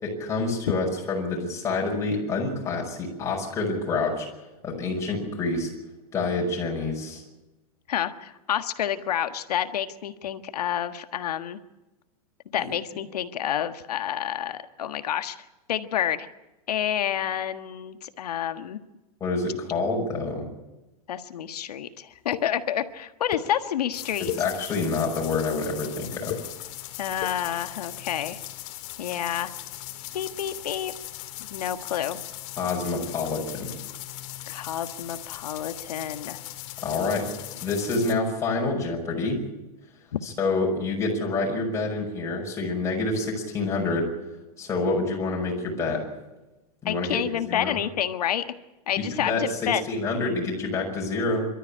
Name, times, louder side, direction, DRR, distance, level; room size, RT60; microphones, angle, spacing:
voice 1, 0.0-4.3 4.6-5.7 6.1-7.2 19.2-20.4 24.4-26.4 32.6-33.7 36.8-37.3 37.6-39.4 40.2-44.1 44.6-46.0 46.8-47.2 47.5-47.8 49.0-49.6 49.9-51.5, left 3 dB, 15° left, -2 dB, 5.6 m, -27 dB
voice 2, 7.9-11.6 12.5-16.3 16.7-18.8 21.1-24.3 27.0-28.4 29.0-29.5 30.1-30.9 31.4-32.2 34.5-36.4 46.8-48.5 48.9-49.8, left 10 dB, 90° left, 9 dB, 1.5 m, -29 dB
sound 1, 22.3-22.4 23.3-23.4 24.1-24.4 25.1-25.5 26.1-26.4 27.1-27.3, left 13 dB, 35° left, 2.4 m, -32 dB
sound 2, 23.9-38.1, left 15 dB, 50° left, 2.2 m, -39 dB
27.5 x 13.5 x 8.6 m, 1.1 s
supercardioid pair, 155°, 19 cm